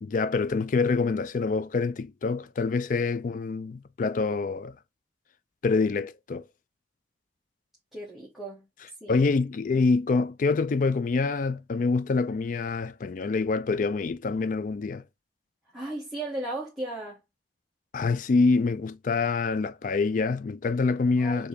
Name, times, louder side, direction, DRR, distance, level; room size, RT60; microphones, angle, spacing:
voice 1, 0.0-4.7 5.6-6.4 9.1-15.0 17.9-21.5, left 4 dB, 45° left, 0.3 m, -26 dB
voice 2, 7.9-8.7 9.0-9.2 15.7-17.2 21.2-21.5, right 1 dB, ahead, 0.9 m, -36 dB
6.5 x 2.7 x 2.7 m
head